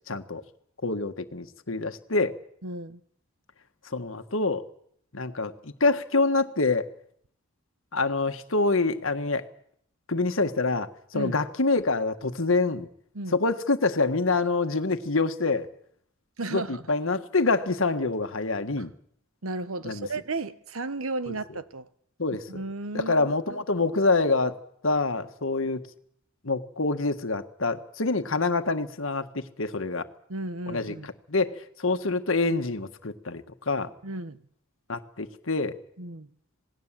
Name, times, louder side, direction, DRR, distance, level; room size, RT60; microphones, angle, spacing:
voice 1, 0.1-0.4 0.8-2.4 3.9-4.6 5.1-6.9 7.9-9.4 10.1-12.9 13.3-15.7 16.5-18.9 19.8-20.1 21.3-21.4 22.2-22.4 22.9-24.6 24.8-25.8 26.4-30.1 30.7-30.9 31.3-33.9 34.9-35.8, left 3 dB, 70° left, 1.5 m, -26 dB
voice 2, 2.6-3.0 11.1-11.3 13.1-13.4 16.4-16.8 18.8-18.9 19.4-21.9 22.5-23.6 30.3-31.1 34.0-34.4 36.0-36.3, right 2 dB, 90° right, 1.2 m, -34 dB
27.0 x 19.5 x 7.5 m
head